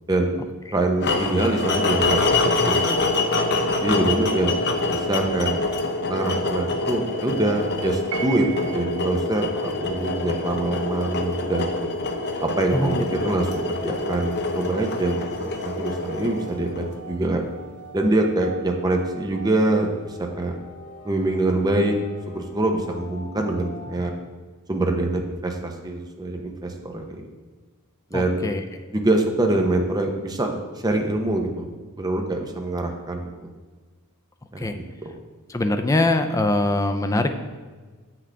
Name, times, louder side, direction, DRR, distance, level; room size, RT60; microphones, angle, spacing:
voice 1, 0.1-0.4 0.7-2.2 2.6-2.8 3.8-4.6 4.9-5.6 6.1-11.9 12.4-17.4 17.9-19.9 20.4-20.6 21.0-22.0 22.3-24.1 24.7-27.3 28.1-28.5 28.9-30.5 30.8-31.7 32.0-33.3 34.5-34.8, right 2 dB, 20° right, 3 dB, 0.7 m, -24 dB
sound 1, 1.0-17.1, left 2 dB, 50° left, 0.7 m, -25 dB
Piano, 8.1-9.0, right 9 dB, 80° right, 0.7 m, -34 dB
sound 2, 11.0-24.1, right 1 dB, 90° left, 2.1 m, -43 dB
voice 2, 12.7-13.0 28.1-28.6 34.6-34.8 35.5-37.3, left 2 dB, 15° left, 7 dB, 0.4 m, -22 dB
7.8 x 6.0 x 3.4 m, 1.4 s
head